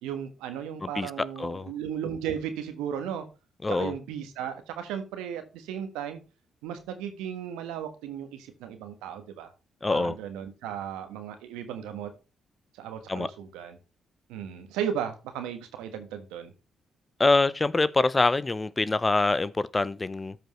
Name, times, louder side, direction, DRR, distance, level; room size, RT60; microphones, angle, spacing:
voice 1, 0.0-3.2 3.7-6.2 6.6-9.5 9.9-12.1 12.7-13.8 14.3-16.5, right 9 dB, 80° right, 1.4 m, -35 dB
voice 2, 0.8-1.7 3.6-3.9 9.8-10.2 13.1-13.3 17.2-20.4, left 3 dB, 30° left, 0.6 m, -25 dB
13.0 x 5.1 x 3.1 m
hypercardioid pair, 45°, 0 cm